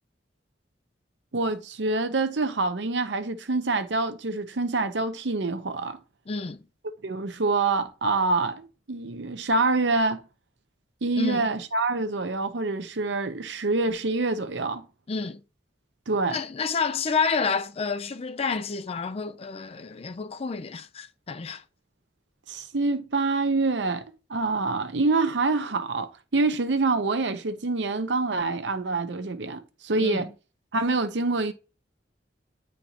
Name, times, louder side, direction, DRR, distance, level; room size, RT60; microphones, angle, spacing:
voice 1, 1.3-6.0 7.0-10.2 11.0-14.9 16.1-16.4 22.5-30.3 30.7-31.5, right 3 dB, 90° right, 0.8 m, -26 dB
voice 2, 6.3-6.6 11.2-11.5 15.1-15.4 16.3-21.6 30.0-30.3, left 5 dB, 35° left, 0.4 m, -29 dB
9.1 x 4.4 x 2.9 m
head